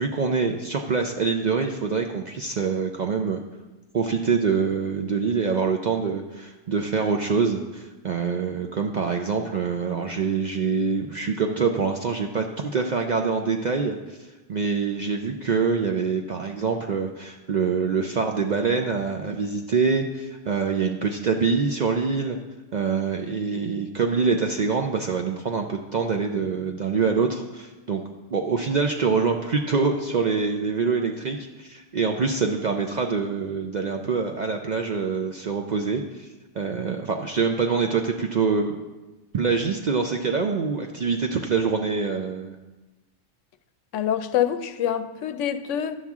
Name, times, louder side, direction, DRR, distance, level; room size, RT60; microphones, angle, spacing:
voice 1, 0.0-3.4 3.9-14.2 14.5-22.4 22.7-28.0 28.3-36.3 36.6-38.7 39.3-42.6, right 5 dB, 55° right, 0.5 m, -25 dB
voice 2, 43.9-46.0, left 10 dB, 80° left, 0.9 m, -25 dB
11.0 x 7.3 x 3.6 m
omnidirectional pair, 1.3 m